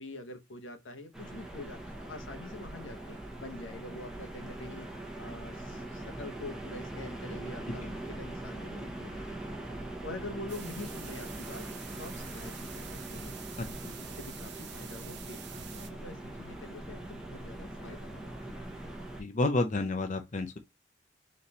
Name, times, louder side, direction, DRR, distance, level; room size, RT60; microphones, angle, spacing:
voice 1, 0.0-9.6 10.0-13.3 13.6-18.6, left 2 dB, 80° left, 0.9 m, -46 dB
sound 1, 1.1-19.2, right 1 dB, 5° right, 0.9 m, -42 dB
sound 2, 10.5-15.9, right 9 dB, 60° right, 0.8 m, -47 dB
voice 2, 19.2-20.6, left 2 dB, 40° left, 0.6 m, -30 dB
4.1 x 3.2 x 4.0 m
head